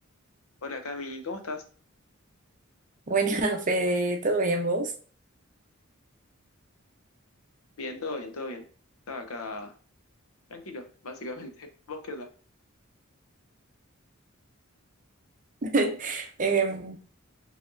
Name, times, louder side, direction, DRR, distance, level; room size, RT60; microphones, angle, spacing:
voice 1, 0.6-1.6 7.8-8.7 9.1-9.8 10.5-12.3, left 2 dB, 85° left, 0.8 m, -37 dB
voice 2, 3.1-4.9 15.6-17.0, right 3 dB, 35° right, 0.7 m, -26 dB
4.6 x 3.4 x 2.6 m
head